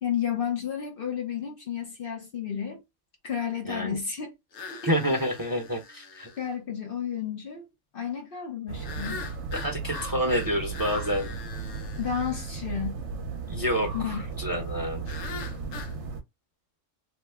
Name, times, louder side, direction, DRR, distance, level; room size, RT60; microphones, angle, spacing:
voice 1, 0.0-2.8 3.2-4.3 4.7-5.2 6.4-7.7 7.9-9.2 12.0-13.0 13.9-14.2 15.1-15.2, left 8 dB, 55° left, 0.7 m, -32 dB
voice 2, 3.7-4.0 4.9-6.3 9.5-11.3 13.5-15.0, equal, 20° right, 0.7 m, -28 dB
sound 1, 4.5-6.5 8.8-12.5 15.1-16.0, left 5 dB, 85° left, 1.1 m, -42 dB
sound 2, 8.7-16.2, right 4 dB, 70° right, 0.9 m, -35 dB
2.8 x 2.1 x 3.3 m
omnidirectional pair, 1.3 m